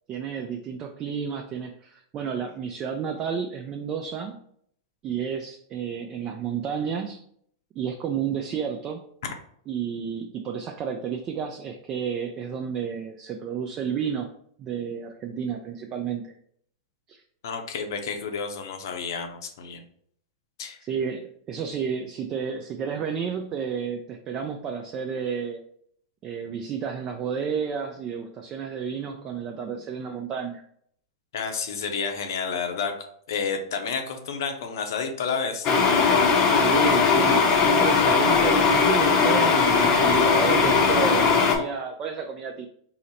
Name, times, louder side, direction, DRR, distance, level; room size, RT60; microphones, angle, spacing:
voice 1, 0.1-4.4 5.0-7.2 7.8-9.0 9.7-14.3 14.6-16.3 17.1-17.2 20.8-25.6 26.2-30.6 36.5-42.7, right 7 dB, 30° right, 3 dB, 0.3 m, -31 dB
voice 2, 17.4-19.8 20.6-20.8 31.3-32.9 33.3-35.7, left 5 dB, 75° left, 5 dB, 0.7 m, -30 dB
sound 1, 35.6-41.6, left 5 dB, 35° left, 0.6 m, -19 dB
3.8 x 2.0 x 4.1 m, 0.66 s
hypercardioid pair, 135°, 2 cm